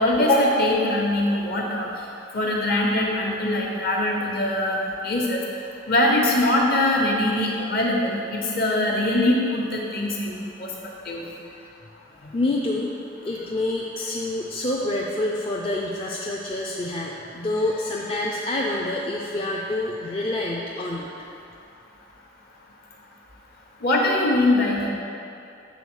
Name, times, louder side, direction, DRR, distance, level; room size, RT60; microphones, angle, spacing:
voice 1, 0.0-1.9 2.3-5.4 5.9-10.3 10.6-10.7 11.1-11.2 23.8-24.9, left 1 dB, 55° left, -1 dB, 1.1 m, -22 dB
voice 2, 11.4-11.7 12.2-12.9 13.2-21.1, left 2 dB, 30° left, -4 dB, 0.4 m, -27 dB
7.0 x 4.0 x 6.2 m, 2.6 s
head